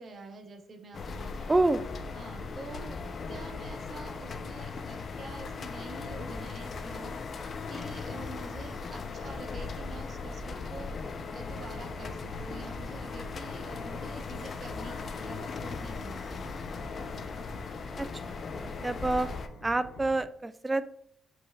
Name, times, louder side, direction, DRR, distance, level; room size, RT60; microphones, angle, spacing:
voice 1, 0.0-1.5 2.1-16.6, right 3 dB, 50° right, 6 dB, 0.8 m, -46 dB
sound 1, 0.9-19.5, left 4 dB, 45° left, 0.4 m, -38 dB
voice 2, 1.5-1.9 18.0-18.1 18.6-19.3 19.6-20.8, right 2 dB, 20° right, 13 dB, 0.3 m, -27 dB
sound 2, 8.5-20.2, equal, 80° left, 1.1 m, -50 dB
5.1 x 4.4 x 2.3 m, 0.66 s
cardioid pair, 90°, 0 cm